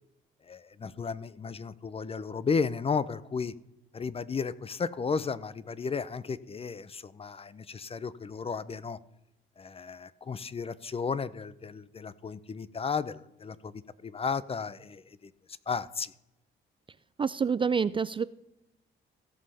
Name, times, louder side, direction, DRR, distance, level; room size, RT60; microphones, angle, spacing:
voice 1, 0.4-3.5 3.9-9.0 9.6-15.3 15.7-16.1, left 5 dB, 30° left, 18 dB, 0.6 m, -34 dB
voice 2, 17.2-18.2, right 6 dB, 25° right, 17 dB, 0.4 m, -27 dB
16.5 x 5.5 x 5.6 m, 0.88 s
cardioid pair, 90°, 20 cm